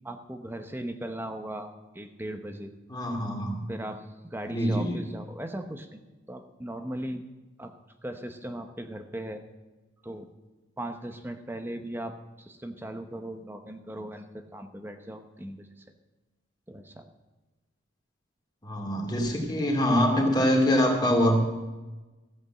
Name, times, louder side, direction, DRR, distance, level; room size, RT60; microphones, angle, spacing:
voice 1, 0.0-2.7 3.7-6.0 6.3-7.2 7.6-7.7 8.0-9.4 10.0-10.3 10.8-15.7 16.7-17.1, right 1 dB, 10° right, 7 dB, 0.8 m, -38 dB
voice 2, 2.9-3.6 4.5-5.0 18.6-21.4, equal, 20° left, 0 dB, 2.5 m, -24 dB
14.5 x 8.0 x 7.7 m, 1.1 s
head